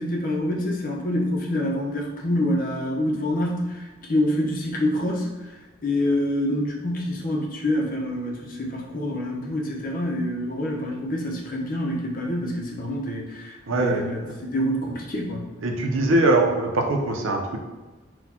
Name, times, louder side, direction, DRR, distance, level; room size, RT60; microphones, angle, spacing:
voice 1, 0.0-5.3 5.8-15.5, left 1 dB, 45° left, -1 dB, 0.7 m, -26 dB
voice 2, 13.7-14.3 15.6-17.6, right 2 dB, 80° right, 3 dB, 0.6 m, -22 dB
4.1 x 2.3 x 4.2 m, 1.2 s
head